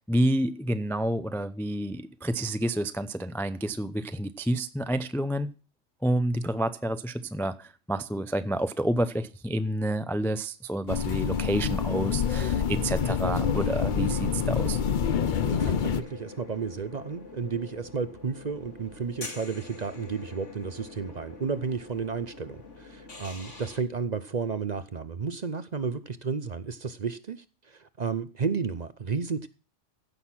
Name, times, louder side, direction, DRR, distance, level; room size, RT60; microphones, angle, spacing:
voice 1, 0.1-5.5 6.0-14.8, right 1 dB, 5° left, 0.4 m, -29 dB
sound 1, 10.9-16.0, left 7 dB, 50° left, 0.7 m, -27 dB
sound 2, 12.7-23.8, left 3 dB, 75° left, 2.7 m, -45 dB
voice 2, 15.4-29.5, right 5 dB, 40° right, 0.7 m, -32 dB
15.5 x 6.4 x 5.8 m
omnidirectional pair, 1.3 m